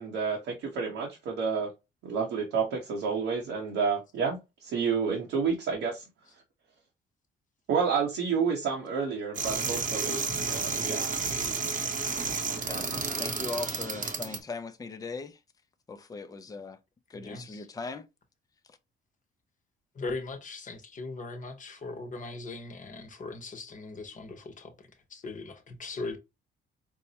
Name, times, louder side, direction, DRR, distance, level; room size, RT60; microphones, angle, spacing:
voice 1, 0.0-1.7 2.0-6.0 7.7-10.2 10.5-11.1, right 5 dB, 85° right, 1.0 m, -30 dB
sound 1, 9.3-14.4, right 4 dB, 40° right, 0.8 m, -31 dB
voice 2, 12.5-15.4 15.9-16.8 17.1-18.1 18.7-18.8, left 4 dB, 20° left, 0.5 m, -39 dB
voice 3, 17.1-17.7 19.9-26.2, left 3 dB, 40° left, 0.9 m, -39 dB
4.5 x 2.1 x 2.8 m
cardioid pair, 90°, 20 cm